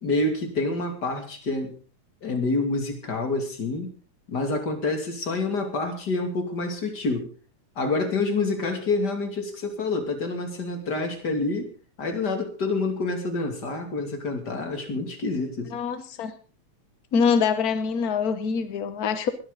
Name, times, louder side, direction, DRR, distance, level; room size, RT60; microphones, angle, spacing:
voice 1, 0.0-1.8 2.2-3.9 4.3-7.3 7.8-11.7 12.0-15.7, left 3 dB, 35° left, 4 dB, 3.0 m, -27 dB
voice 2, 15.7-16.3 17.1-19.3, left 6 dB, 65° left, 10 dB, 0.9 m, -24 dB
21.0 x 12.0 x 4.0 m, 0.38 s
omnidirectional pair, 3.4 m